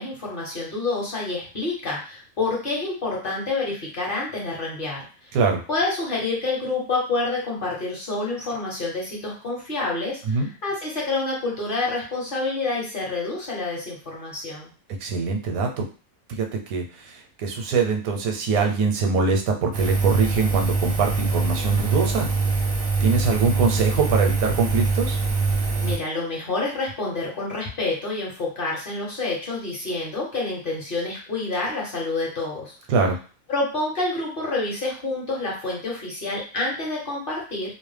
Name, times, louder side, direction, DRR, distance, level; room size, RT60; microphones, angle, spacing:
voice 1, 0.0-5.4 5.7-14.7 25.8-32.7 33.5-37.7, left 3 dB, 45° left, -4 dB, 0.8 m, -28 dB
voice 2, 5.3-5.6 10.3-10.5 15.0-15.8 16.3-22.3 23.0-25.2 32.9-33.2, right 4 dB, 80° right, 3 dB, 1.0 m, -23 dB
Engine, 19.7-26.0, right 4 dB, 60° right, 0.6 m, -23 dB
2.5 x 2.0 x 3.2 m, 0.37 s
omnidirectional pair, 1.5 m